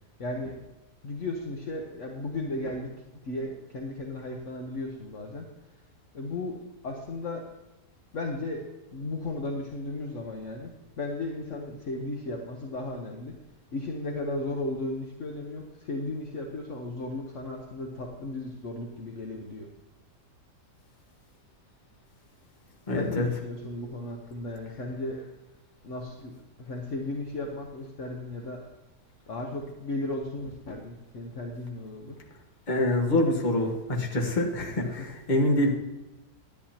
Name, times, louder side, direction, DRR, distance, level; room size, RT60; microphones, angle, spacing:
voice 1, 0.2-0.6 1.0-2.9 3.2-5.4 6.1-6.6 6.8-7.4 8.1-8.6 8.9-10.7 11.0-13.3 13.7-19.7 22.9-25.2 25.8-26.3 26.6-28.6 29.3-32.2, left 2 dB, 50° left, 1 dB, 1.2 m, -35 dB
voice 2, 22.9-23.3 32.7-35.7, left 1 dB, 30° left, 1 dB, 1.4 m, -25 dB
11.0 x 10.5 x 2.9 m, 1.0 s
omnidirectional pair, 1.8 m